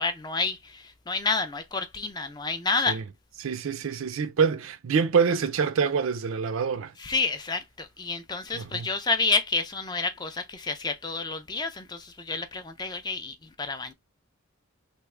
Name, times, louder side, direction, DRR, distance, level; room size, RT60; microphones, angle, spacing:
voice 1, 0.0-3.0 7.0-13.9, left 4 dB, 20° left, 0.3 m, -29 dB
voice 2, 3.4-6.9 8.5-8.9, right 6 dB, 65° right, 0.4 m, -26 dB
3.4 x 2.1 x 3.1 m
head